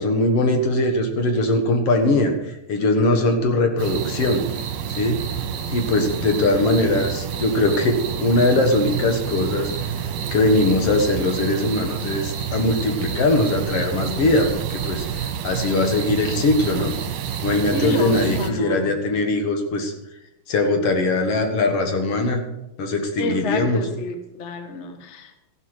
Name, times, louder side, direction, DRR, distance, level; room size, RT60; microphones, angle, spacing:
voice 1, 0.0-4.4 4.9-5.2 5.7-9.7 10.3-16.9 17.4-19.9 20.5-22.4 22.8-23.8, left 2 dB, 50° left, 5 dB, 2.2 m, -21 dB
sound 1, 3.8-18.5, right 8 dB, 75° right, 2.7 m, -28 dB
voice 2, 17.7-18.9 23.2-25.4, left 2 dB, 85° left, 6 dB, 0.6 m, -29 dB
14.0 x 11.5 x 4.8 m, 0.88 s
omnidirectional pair, 3.8 m